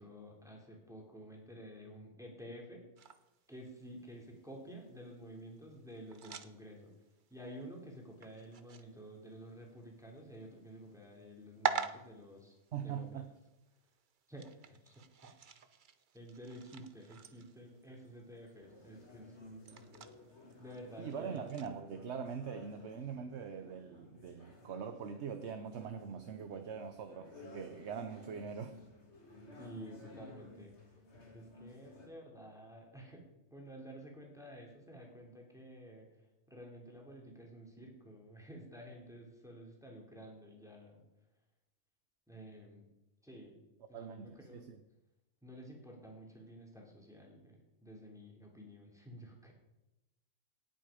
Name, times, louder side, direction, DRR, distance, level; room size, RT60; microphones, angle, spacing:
voice 1, 0.0-2.8 3.5-6.9 7.3-12.5 12.8-13.1 14.3-15.3 16.1-20.0 20.6-21.4 29.6-30.7 31.3-33.2 33.5-36.1 36.5-41.0 42.3-42.8 43.2-43.6 43.9-44.6 45.4-49.5, equal, ahead, -1 dB, 3.1 m, -51 dB
sound 1, 3.0-21.8, right 6 dB, 45° right, 0.8 m, -47 dB
voice 2, 12.7-13.3 21.0-28.7 43.9-44.8, right 7 dB, 65° right, 8 dB, 1.1 m, -42 dB
sound 2, 18.6-32.1, left 2 dB, 65° left, 2.9 m, -56 dB
18.0 x 8.4 x 5.1 m, 0.96 s
omnidirectional pair, 1.3 m